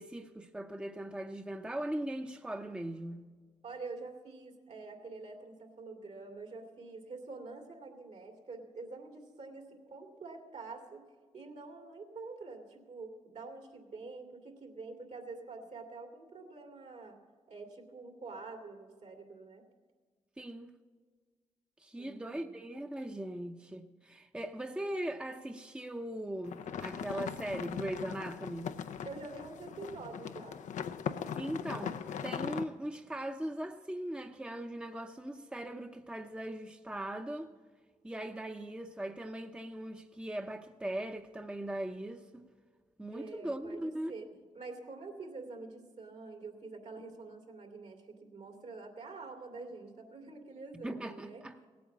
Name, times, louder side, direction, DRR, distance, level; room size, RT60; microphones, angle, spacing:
voice 1, 0.0-3.2 20.4-20.7 21.8-28.7 31.4-37.5 38.0-42.5 43.0-44.1 50.7-51.6, right 1 dB, 10° right, 0.7 m, -39 dB
voice 2, 3.6-11.0 11.3-17.2 17.5-19.6 22.0-22.6 29.0-30.6 43.1-44.3 44.5-51.4, right 3 dB, 70° right, 2.5 m, -46 dB
sound 1, 26.4-32.6, left 7 dB, 80° left, 0.6 m, -40 dB
17.0 x 8.6 x 7.2 m
cardioid pair, 60°, 13 cm